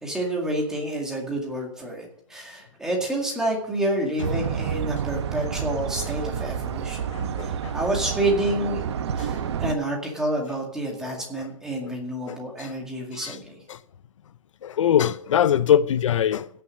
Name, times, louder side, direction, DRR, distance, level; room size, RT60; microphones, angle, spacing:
voice 1, 0.0-7.0 7.4-8.8 9.2-13.6, right 1 dB, 5° right, 2.0 m, -28 dB
sound 1, 4.2-9.8, right 8 dB, 55° right, 0.9 m, -29 dB
voice 2, 7.1-7.7 9.2-9.3 11.0-11.5 11.8-11.9 12.3-12.7 13.1-13.4 13.7-13.8 14.6-16.5, left 9 dB, 65° left, 0.6 m, -23 dB
16.5 x 6.8 x 6.4 m
hypercardioid pair, 175°, 18 cm